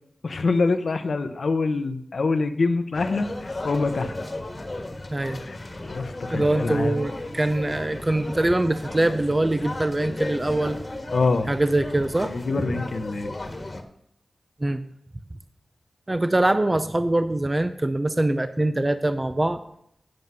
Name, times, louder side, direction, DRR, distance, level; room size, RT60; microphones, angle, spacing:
voice 1, 0.2-4.1 5.3-5.6 5.8-7.0 11.1-11.5 12.2-13.3, left 3 dB, 75° left, 8 dB, 0.9 m, -25 dB
sound 1, 2.9-13.8, left 2 dB, 40° left, 1.5 m, -35 dB
voice 2, 6.3-10.8 11.5-12.3 14.6-14.8 16.1-19.6, right 1 dB, 25° right, 9 dB, 0.6 m, -23 dB
9.1 x 7.8 x 5.5 m, 0.71 s
wide cardioid pair, 65°, 0 cm